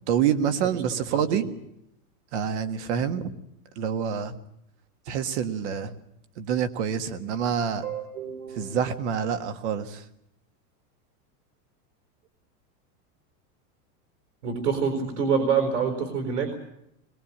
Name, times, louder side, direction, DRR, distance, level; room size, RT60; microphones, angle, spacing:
voice 1, 0.1-1.5 2.3-3.3 3.8-4.3 5.1-5.9 6.4-7.9 8.6-10.0, right 8 dB, 45° right, 8 dB, 1.8 m, -27 dB
voice 2, 0.9-1.5 7.8-8.9 14.4-16.5, right 6 dB, 90° right, 5 dB, 4.7 m, -27 dB
23.0 x 20.5 x 8.7 m, 0.77 s
supercardioid pair, 180°, 47 cm